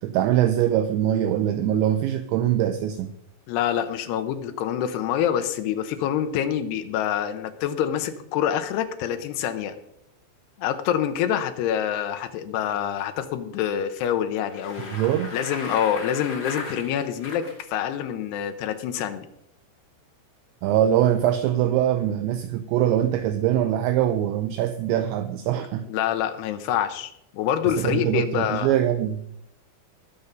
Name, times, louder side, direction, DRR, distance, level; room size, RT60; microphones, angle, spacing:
voice 1, 0.0-3.1 14.9-15.3 20.6-25.8 27.8-29.2, right 11 dB, 80° right, 9 dB, 2.8 m, -23 dB
voice 2, 3.5-9.8 10.6-15.0 15.3-19.3 25.9-28.7, left 9 dB, 80° left, 8 dB, 2.4 m, -26 dB
Bicycle, 14.3-17.6, left 2 dB, 30° left, 2.0 m, -37 dB
20.5 x 7.0 x 5.3 m, 0.77 s
omnidirectional pair, 5.7 m